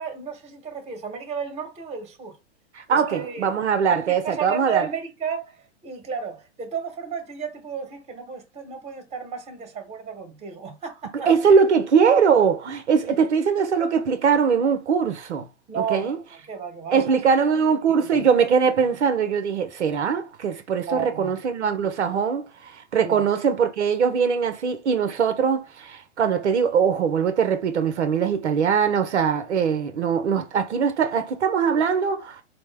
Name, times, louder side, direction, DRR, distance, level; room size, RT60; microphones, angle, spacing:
voice 1, 0.0-2.4 2.9-3.5 3.9-4.0 4.2-5.6 5.8-11.3 13.0-13.2 15.7-16.1 16.5-17.2 17.5-17.6 17.9-18.3 20.9-21.4 23.0-23.2, right 6 dB, 20° right, 1.1 m, -33 dB
voice 2, 2.7-4.9 11.3-15.5 15.8-16.2 16.9-32.4, right 6 dB, 75° right, 0.7 m, -21 dB
4.3 x 2.0 x 3.3 m
hypercardioid pair, 110°, 35 cm